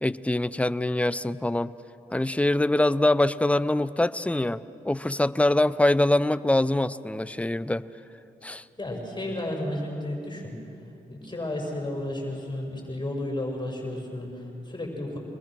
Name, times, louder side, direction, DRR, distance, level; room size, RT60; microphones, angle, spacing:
voice 1, 0.0-1.7 2.1-7.8 8.4-8.6, left 1 dB, 5° left, 15 dB, 0.7 m, -24 dB
voice 2, 8.8-10.6 11.1-15.2, left 1 dB, 25° left, 1 dB, 5.9 m, -32 dB
25.0 x 21.0 x 6.2 m, 2.8 s
supercardioid pair, 45°, 18 cm